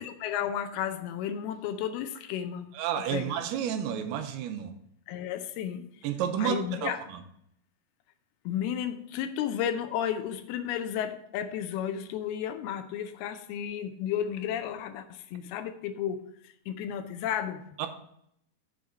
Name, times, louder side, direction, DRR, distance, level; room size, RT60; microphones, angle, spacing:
voice 1, 0.0-2.8 3.1-3.4 5.1-6.1 6.4-7.0 8.5-17.6, left 9 dB, 80° left, 2.4 m, -33 dB
voice 2, 2.7-4.7 6.0-6.9 17.8-17.9, right 9 dB, 85° right, 2.6 m, -30 dB
7.0 x 5.1 x 6.3 m
omnidirectional pair, 4.7 m